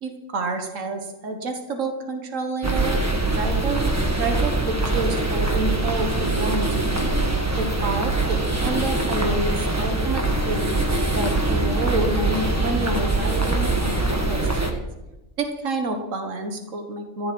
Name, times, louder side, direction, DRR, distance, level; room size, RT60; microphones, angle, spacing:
voice 1, 0.0-3.0 3.3-3.9 4.2-7.1 7.6-10.7 11.1-14.8 15.4-17.3, right 2 dB, 80° right, 4 dB, 1.8 m, -29 dB
sound 1, 2.6-14.7, right 2 dB, 15° right, 1.4 m, -23 dB
14.5 x 7.5 x 7.8 m, 1.0 s
omnidirectional pair, 1.3 m